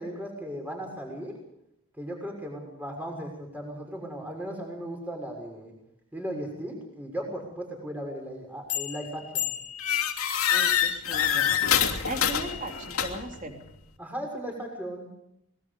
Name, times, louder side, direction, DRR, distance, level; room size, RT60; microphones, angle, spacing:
voice 1, 0.0-1.3 2.0-5.7 6.1-9.5 14.0-15.1, equal, 10° right, 1 dB, 6.6 m, -36 dB
sound 1, 8.7-9.0 9.3-13.4, left 9 dB, 80° left, 3.0 m, -26 dB
voice 2, 10.5-11.5 12.1-13.7, right 1 dB, 35° right, 3 dB, 3.2 m, -37 dB
25.5 x 21.5 x 5.2 m, 0.80 s
head